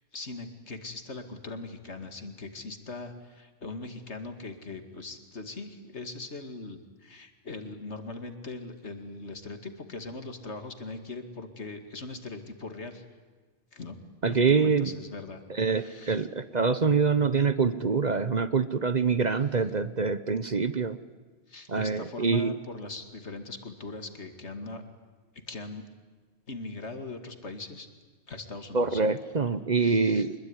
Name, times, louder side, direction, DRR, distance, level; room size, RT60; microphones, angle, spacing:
voice 1, 0.1-13.0 13.7-14.0 14.3-15.4 15.7-16.3 21.5-24.8 25.5-25.8 26.5-27.9 28.3-29.0 29.4-30.3, left 3 dB, 70° left, 7 dB, 2.6 m, -40 dB
voice 2, 14.2-14.9 15.6-21.0 21.7-22.5 28.7-30.3, right 5 dB, 40° right, 13 dB, 1.0 m, -25 dB
25.5 x 21.5 x 9.8 m, 1.4 s
omnidirectional pair, 1.2 m